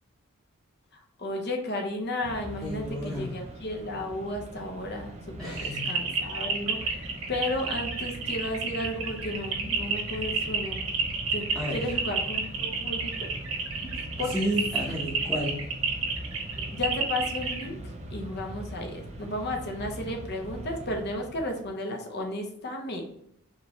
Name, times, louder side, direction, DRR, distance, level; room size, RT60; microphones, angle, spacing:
voice 1, 1.2-6.9 7.3-10.8 11.3-11.4 11.7-13.1 14.2-14.3 16.7-17.8 18.1-23.2, left 1 dB, 50° left, 2 dB, 0.9 m, -33 dB
Mechanisms, 2.2-21.7, right 1 dB, 30° right, 0.6 m, -41 dB
voice 2, 2.6-3.4 5.4-6.0 11.5-12.0 14.2-15.7, equal, ahead, -8 dB, 0.9 m, -32 dB
sound 1, 5.6-17.7, right 5 dB, 80° right, 1.4 m, -30 dB
4.9 x 3.3 x 3.0 m, 0.74 s
head